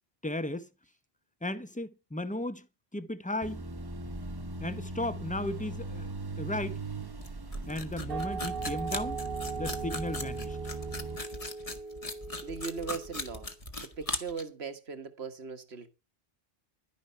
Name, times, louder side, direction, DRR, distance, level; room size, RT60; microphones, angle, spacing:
voice 1, 0.2-0.7 1.4-2.7 2.9-3.6 4.6-6.1 6.4-6.8 7.7-9.2 9.6-10.6, left 1 dB, 10° left, 0.9 m, -35 dB
sound 1, 3.4-11.2, right 3 dB, 25° right, 0.9 m, -39 dB
sound 2, 6.7-6.8 7.1-14.4, left 2 dB, 35° left, 1.7 m, -39 dB
sound 3, 8.1-13.5, right 4 dB, 60° right, 1.4 m, -39 dB
voice 2, 12.4-13.5 13.8-15.9, right 5 dB, 85° right, 1.8 m, -39 dB
11.5 x 10.5 x 5.6 m
omnidirectional pair, 1.1 m